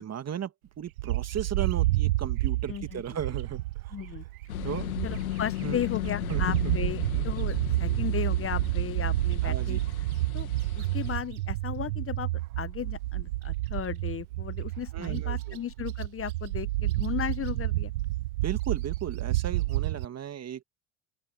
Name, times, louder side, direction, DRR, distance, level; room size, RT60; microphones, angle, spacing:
voice 1, 0.0-3.6 4.6-4.9 5.6-5.8 6.3-6.7 9.4-9.8 14.9-15.6 18.4-20.6, right 9 dB, 35° right, 2.2 m, -35 dB
Bird, 1.0-5.5 5.8-20.0, right 17 dB, 80° right, 0.6 m, -30 dB
voice 2, 2.7-3.0 3.9-4.2 5.0-9.8 10.3-10.5 10.8-12.3 12.6-17.9, left 9 dB, 30° left, 1.0 m, -35 dB
sound 1, 4.5-11.2, left 14 dB, 80° left, 1.6 m, -36 dB
open air
hypercardioid pair, 70°, 42 cm